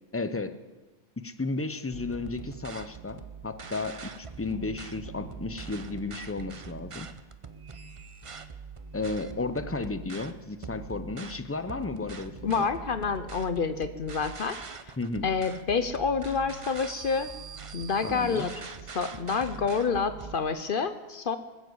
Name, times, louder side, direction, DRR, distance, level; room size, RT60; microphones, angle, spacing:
voice 1, 0.1-0.6 1.2-7.1 8.9-12.7 15.0-15.3 18.0-18.6, left 3 dB, 15° left, 10 dB, 0.6 m, -33 dB
sound 1, 1.9-20.4, right 5 dB, 35° right, 0.7 m, -43 dB
voice 2, 12.4-14.6 15.2-17.3 17.7-21.4, left 5 dB, 55° left, 11 dB, 0.9 m, -28 dB
20.0 x 7.7 x 7.9 m, 1.2 s
omnidirectional pair, 1.1 m